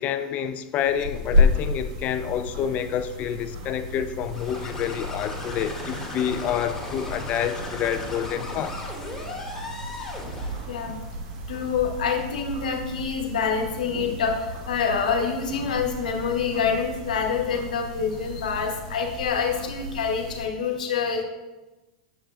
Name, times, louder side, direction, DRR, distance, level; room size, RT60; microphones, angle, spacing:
voice 1, 0.0-8.8, left 9 dB, 40° left, 0.3 m, -28 dB
sound 1, 0.8-20.4, left 2 dB, 60° right, 1.2 m, -32 dB
sound 2, 4.2-10.8, left 2 dB, 10° left, 2.3 m, -36 dB
voice 2, 11.5-21.2, left 6 dB, 80° left, 1.1 m, -26 dB
7.3 x 6.9 x 2.4 m
hypercardioid pair, 105°, 4 cm